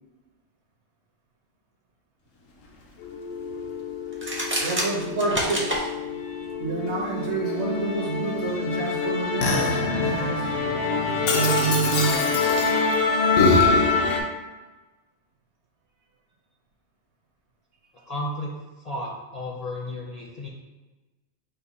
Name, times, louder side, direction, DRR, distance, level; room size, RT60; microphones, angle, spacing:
Musical instrument, 3.0-14.2, left 4 dB, 80° left, 1.1 m, -24 dB
sound 1, 4.1-5.8, right 1 dB, 15° right, 0.5 m, -27 dB
voice 1, 4.6-5.9 6.6-10.7 11.2-12.4, right 5 dB, 65° right, 0 dB, 1.1 m, -28 dB
voice 2, 18.1-18.5 18.8-20.5, left 1 dB, 40° left, -3 dB, 0.6 m, -33 dB
5.5 x 2.2 x 4.1 m, 1.2 s
omnidirectional pair, 1.3 m